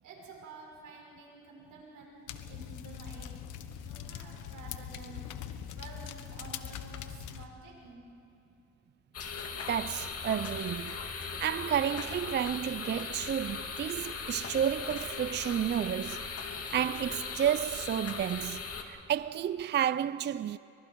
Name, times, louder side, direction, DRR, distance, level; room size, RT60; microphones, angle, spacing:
voice 1, 0.0-3.3 3.8-8.0, right 3 dB, 85° right, 5.8 m, -50 dB
sound 1, 2.3-7.5, left 9 dB, 85° left, 1.2 m, -42 dB
sound 2, 9.1-18.8, left 5 dB, 50° left, 2.3 m, -39 dB
voice 2, 9.7-16.3 16.7-20.6, right 9 dB, 35° right, 0.4 m, -31 dB
29.5 x 24.5 x 4.6 m
cardioid pair, 90°, 30 cm